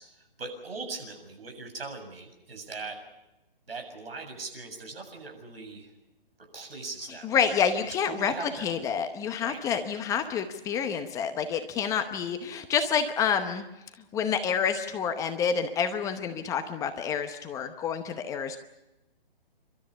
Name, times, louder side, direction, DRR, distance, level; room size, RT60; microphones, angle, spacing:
voice 1, 0.0-3.0 3.7-5.9 6.5-7.4 8.1-8.9 9.4-9.6, right 3 dB, 80° right, 4 dB, 7.4 m, -40 dB
voice 2, 7.2-13.6 14.1-18.6, left 7 dB, 10° left, 8 dB, 0.8 m, -28 dB
29.5 x 13.0 x 9.8 m, 0.97 s
hypercardioid pair, 150°, 30 cm